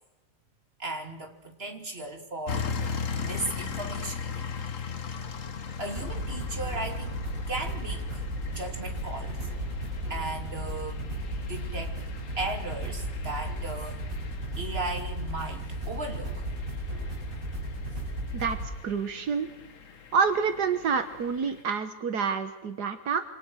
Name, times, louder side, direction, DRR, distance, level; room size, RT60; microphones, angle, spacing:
voice 1, 0.8-2.8 3.1-4.2 5.8-8.2 8.5-9.4 10.1-11.0 11.4-11.9 12.4-14.0 14.6-16.3, right 2 dB, 35° right, 5 dB, 3.1 m, -36 dB
sound 1, 2.5-21.6, left 5 dB, 55° left, 1.7 m, -39 dB
sound 2, 2.5-3.7 6.0-18.7, right 1 dB, 55° right, 7.6 m, -35 dB
voice 2, 18.8-19.5 20.1-23.2, right 6 dB, 80° right, 9 dB, 1.9 m, -27 dB
27.0 x 26.0 x 6.4 m, 1.1 s
omnidirectional pair, 1.7 m